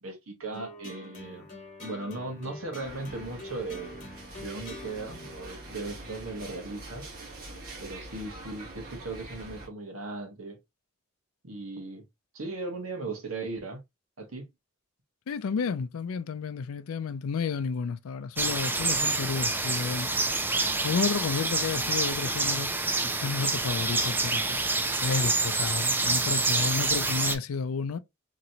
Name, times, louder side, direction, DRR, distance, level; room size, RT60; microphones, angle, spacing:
voice 1, 0.0-1.4 1.8-4.1 4.4-7.0 7.8-10.6 11.4-12.0 12.3-13.8 14.2-14.5, right 2 dB, 75° right, 1.1 m, -37 dB
sound 1, 0.5-7.0, left 2 dB, 35° left, 1.4 m, -46 dB
sound 2, 2.8-9.7, right 2 dB, 45° right, 1.3 m, -44 dB
voice 2, 15.3-20.2 20.8-22.7 23.0-24.6 25.0-28.0, left 5 dB, 75° left, 0.4 m, -31 dB
sound 3, 18.4-27.4, right 3 dB, 10° right, 0.3 m, -27 dB
3.0 x 2.8 x 2.7 m
head